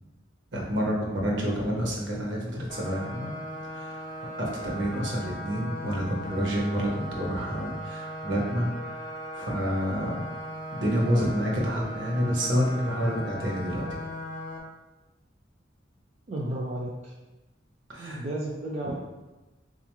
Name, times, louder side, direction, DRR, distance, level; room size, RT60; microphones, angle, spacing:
voice 1, 0.5-3.3 3.7-9.1 9.3-10.2 10.7-14.0 17.9-18.2, equal, 65° right, -2 dB, 0.8 m, -28 dB
sound 1, 2.7-14.6, equal, 40° left, 0.5 m, -38 dB
voice 2, 16.3-17.1 18.0-18.9, right 1 dB, 35° right, -4 dB, 0.4 m, -33 dB
3.8 x 2.4 x 3.0 m, 1.1 s
head